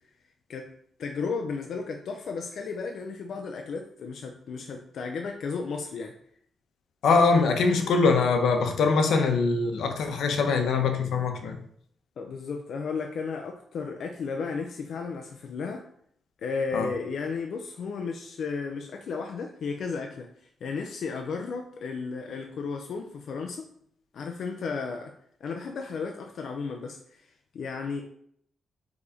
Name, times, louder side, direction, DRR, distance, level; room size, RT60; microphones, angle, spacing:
voice 1, 1.0-6.1 12.2-15.8 16.4-20.3 20.6-23.7 24.1-25.1 25.4-27.2 27.5-28.0, left 5 dB, 55° left, 3 dB, 0.6 m, -34 dB
voice 2, 7.0-11.6 16.7-16.9, left 4 dB, 80° left, 5 dB, 1.0 m, -23 dB
4.9 x 4.1 x 4.9 m, 0.67 s
wide cardioid pair, 180°, 0 cm